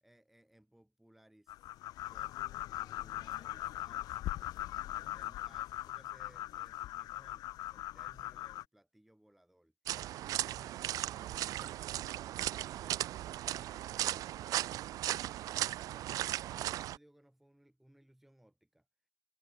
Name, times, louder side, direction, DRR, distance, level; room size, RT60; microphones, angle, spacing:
voice 1, 0.0-1.5 2.1-2.4 2.8-4.4 4.9-9.7 10.1-12.0 12.3-14.6 15.7-18.9, right 1 dB, ahead, 1.8 m, -64 dB
sound 1, 1.5-8.6, left 15 dB, 35° left, 0.5 m, -40 dB
sound 2, 9.9-17.0, right 14 dB, 30° right, 0.4 m, -37 dB
hypercardioid pair, 100°, 11 cm